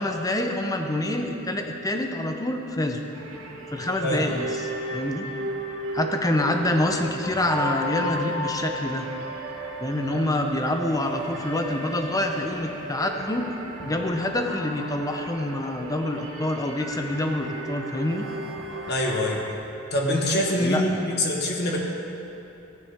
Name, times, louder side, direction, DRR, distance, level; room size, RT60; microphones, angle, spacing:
voice 1, 0.0-3.0 3.7-5.3 5.9-9.1 9.8-13.5 13.8-18.3 20.6-21.1, left 1 dB, 15° left, 4 dB, 0.7 m, -26 dB
sound 1, 3.1-19.5, equal, 65° right, 1.4 m, -35 dB
voice 2, 18.9-19.4 19.9-21.8, left 1 dB, 50° left, -1 dB, 1.6 m, -24 dB
15.0 x 9.8 x 3.6 m, 2.9 s
head